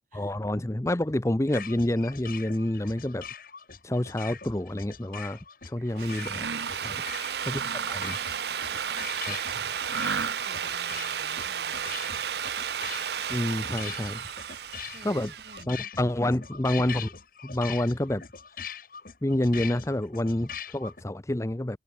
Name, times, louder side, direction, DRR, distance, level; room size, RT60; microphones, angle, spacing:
voice 1, 0.1-3.2 3.8-5.4 5.6-6.5 6.8-6.9 7.5-7.6 7.9-8.2 9.3-9.4 13.3-14.2 15.0-15.3 15.7-17.1 17.4-18.2 19.2-21.8, left 1 dB, 15° left, 0.7 m, -28 dB
sound 1, 1.5-21.0, left 7 dB, 50° left, 2.8 m, -42 dB
Drill, 5.8-15.6, right 8 dB, 65° right, 0.6 m, -33 dB
Mechanisms, 6.1-6.9 7.4-9.3 9.8-10.7, right 5 dB, 85° right, 1.1 m, -35 dB
voice 2, 6.9-9.6 9.9-12.5 14.8-16.2, right 1 dB, 50° right, 5.7 m, -54 dB
head